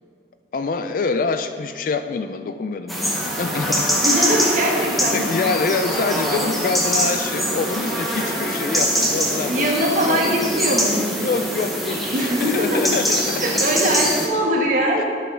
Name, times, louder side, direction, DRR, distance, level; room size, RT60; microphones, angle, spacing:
voice 1, 0.5-3.9 5.1-10.6 11.2-13.4, left 4 dB, 50° left, 9 dB, 0.3 m, -26 dB
sound 1, 2.9-14.3, equal, ahead, 0.9 m, -23 dB
voice 2, 4.0-5.3 9.5-11.2 12.1-12.8 13.4-15.0, right 1 dB, 45° right, -1 dB, 1.2 m, -21 dB
12.0 x 4.9 x 3.7 m, 2.3 s
head